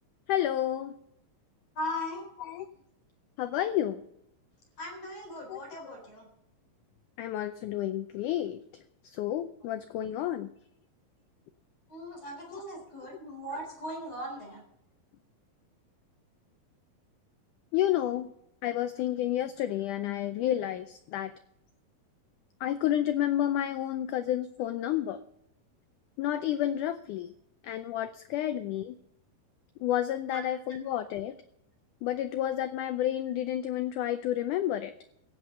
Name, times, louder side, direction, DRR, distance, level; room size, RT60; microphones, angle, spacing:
voice 1, 0.3-1.0 2.5-2.7 3.4-4.0 5.5-5.6 7.2-8.6 9.0-10.5 17.7-18.3 18.6-21.3 22.6-25.2 26.2-27.3 27.6-29.0 29.8-31.4 32.0-34.9, left 12 dB, 90° left, 11 dB, 1.7 m, -30 dB
voice 2, 1.7-2.2 4.8-6.3 11.9-14.6 30.3-30.4, left 1 dB, 45° left, 1 dB, 5.1 m, -38 dB
16.0 x 8.0 x 8.0 m, 0.79 s
omnidirectional pair, 4.4 m